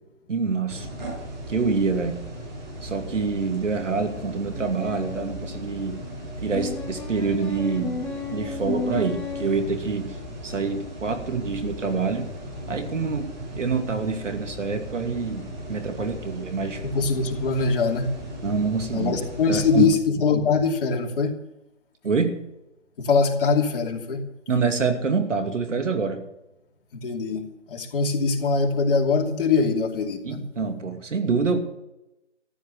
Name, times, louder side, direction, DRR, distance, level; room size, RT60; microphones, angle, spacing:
voice 1, 0.3-0.9 1.5-2.2 2.8-6.0 6.4-8.0 8.3-10.2 10.4-12.3 12.7-13.3 13.6-16.8 18.4-19.1 19.5-19.9 22.0-22.4 24.5-26.2 30.2-31.6, right 4 dB, 85° right, 6 dB, 2.6 m, -26 dB
sound 1, 0.7-19.8, equal, 35° right, 7.3 m, -37 dB
sound 2, 4.5-5.6 6.5-9.6, left 4 dB, ahead, 2.0 m, -33 dB
voice 2, 16.8-18.2 18.9-21.4 23.0-24.3 26.9-30.4, left 4 dB, 50° left, 1 dB, 2.7 m, -23 dB
14.0 x 10.5 x 6.9 m, 0.90 s
hypercardioid pair, 155°, 36 cm